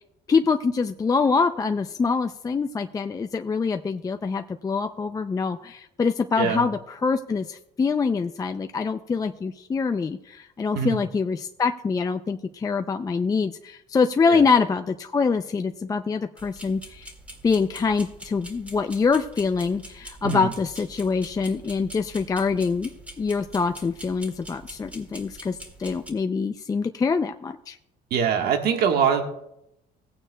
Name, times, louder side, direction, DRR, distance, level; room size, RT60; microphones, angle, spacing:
voice 1, 0.3-17.1 17.4-22.9 23.2-27.8, left 5 dB, 20° left, 7 dB, 0.4 m, -25 dB
sound 1, 16.4-26.1, right 1 dB, 10° right, 2.0 m, -44 dB
voice 2, 28.1-29.2, right 7 dB, 70° right, 4 dB, 1.4 m, -23 dB
17.5 x 9.0 x 2.2 m, 0.80 s
cardioid pair, 110°, 17 cm